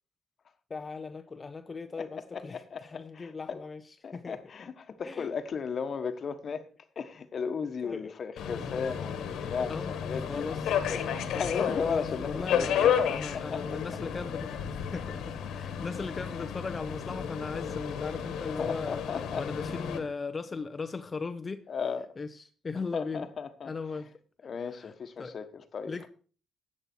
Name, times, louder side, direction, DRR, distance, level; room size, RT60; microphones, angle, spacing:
voice 1, 0.7-4.4 5.0-5.3 7.8-8.1 8.4-8.5 9.7-10.0 10.3-10.6 11.3-19.0 19.4-21.6 22.2-23.3 23.6-24.1 24.6-24.9 25.2-25.4 25.9-26.1, left 4 dB, 30° left, 0.8 m, -38 dB
voice 2, 2.0-3.6 4.0-6.7 6.9-13.0 13.3-13.8 18.6-19.4 21.7-22.1 22.9-23.7 24.4-26.1, left 6 dB, 50° left, 1.3 m, -35 dB
Subway metro underground, 8.4-20.0, left 8 dB, 80° left, 1.6 m, -32 dB
14.0 x 8.7 x 4.5 m
cardioid pair, 90°, 0 cm